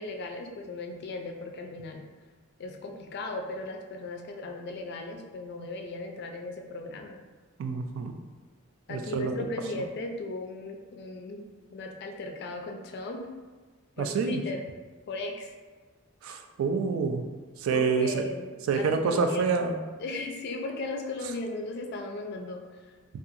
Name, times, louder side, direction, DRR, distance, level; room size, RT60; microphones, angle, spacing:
voice 1, 0.0-2.0 2.6-7.2 8.9-13.3 14.0-14.6 15.1-15.5 17.7-19.4 20.0-22.9, left 2 dB, 55° left, 3 dB, 0.3 m, -37 dB
voice 2, 7.6-8.1 8.9-9.3 14.0-14.4 16.2-17.3 17.6-18.3 18.7-19.8, right 5 dB, 85° right, 5 dB, 0.3 m, -27 dB
2.7 x 2.3 x 2.5 m, 1.4 s
head